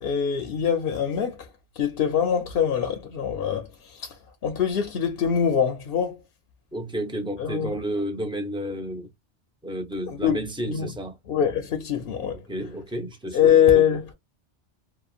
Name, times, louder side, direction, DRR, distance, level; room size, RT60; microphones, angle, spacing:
voice 1, 0.0-1.5 1.8-4.1 4.4-6.2 7.4-7.8 10.1-10.9 11.3-12.4 13.3-14.1, left 8 dB, 60° left, 0.7 m, -23 dB
voice 2, 6.7-9.1 9.6-11.2 12.3-13.5, right 1 dB, 5° right, 0.4 m, -31 dB
3.0 x 2.1 x 2.4 m
omnidirectional pair, 1.2 m